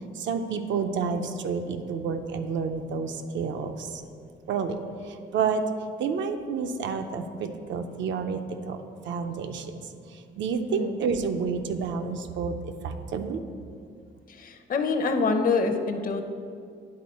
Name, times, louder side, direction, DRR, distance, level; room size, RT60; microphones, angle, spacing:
voice 1, 0.1-4.0 4.5-4.8 5.0-5.6 6.0-9.9 10.1-13.4, right 5 dB, 70° right, 7 dB, 0.6 m, -30 dB
voice 2, 14.4-16.2, left 4 dB, 45° left, 7 dB, 0.6 m, -25 dB
9.7 x 3.8 x 4.2 m, 2.3 s
cardioid pair, 90°, 20 cm